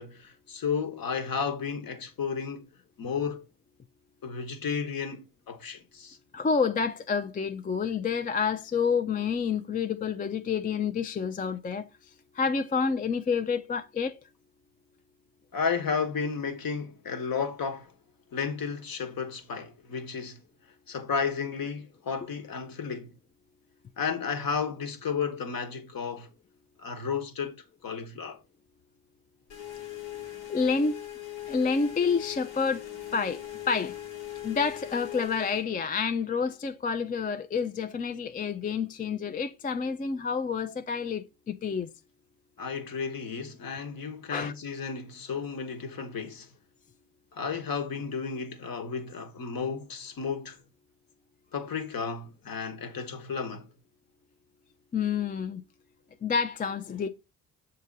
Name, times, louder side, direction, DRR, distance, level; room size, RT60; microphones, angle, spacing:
voice 1, 0.0-2.7 3.0-3.4 4.2-6.2 15.5-17.9 18.3-20.4 20.9-23.1 24.0-26.3 26.8-27.6 27.8-28.4 42.6-46.5 47.3-50.6 51.5-53.7, left 6 dB, 50° left, 1.2 m, -33 dB
voice 2, 6.3-11.9 12.3-14.2 30.5-30.9 31.5-34.0 34.4-41.9 44.3-44.5 54.9-55.6 56.2-57.1, left 5 dB, 20° left, 0.4 m, -29 dB
sound 1, 29.5-35.7, left 13 dB, 75° left, 1.5 m, -40 dB
6.5 x 2.8 x 5.1 m
hypercardioid pair, 50°, 45 cm